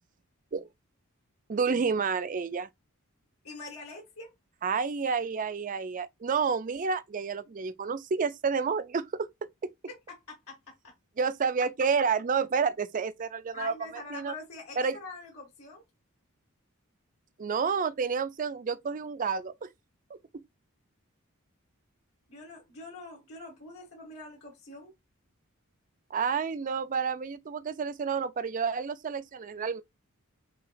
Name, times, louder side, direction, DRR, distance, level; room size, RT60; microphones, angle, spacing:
voice 1, 1.5-2.7 4.6-9.3 11.2-13.7 14.1-14.3 14.8-15.0 17.4-19.7 26.1-29.8, right 5 dB, 35° right, 0.4 m, -29 dB
voice 2, 3.4-4.3 10.3-10.6 13.5-15.8 22.3-24.9, left 3 dB, 85° left, 2.0 m, -44 dB
5.7 x 2.8 x 2.5 m
head